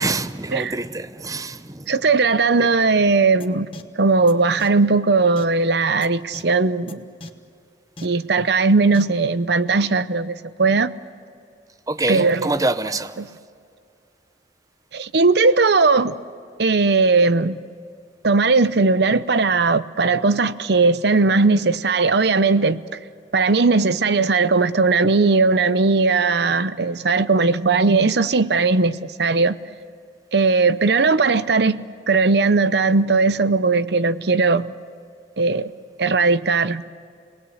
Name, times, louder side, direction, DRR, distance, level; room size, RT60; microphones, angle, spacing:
voice 1, 0.0-2.0 2.6-2.7 11.9-13.2, right 2 dB, 20° right, 0.7 m, -25 dB
voice 2, 1.9-3.7 4.0-7.0 8.0-10.9 12.1-12.6 13.2-13.3 14.9-16.2 16.6-17.6 18.2-22.8 23.3-29.6 30.3-31.8 32.1-34.7 35.4-35.7 36.0-36.8, right 3 dB, 60° right, 0.7 m, -18 dB
sound 1, 3.4-3.5 3.7-3.8 4.3-4.4 4.6-4.7 5.4-5.5 6.0-6.1 6.3-6.4 6.9-7.0 7.2-7.3 8.0-8.1 8.9-9.0, left 2 dB, 30° left, 1.3 m, -36 dB
29.0 x 19.5 x 8.0 m
head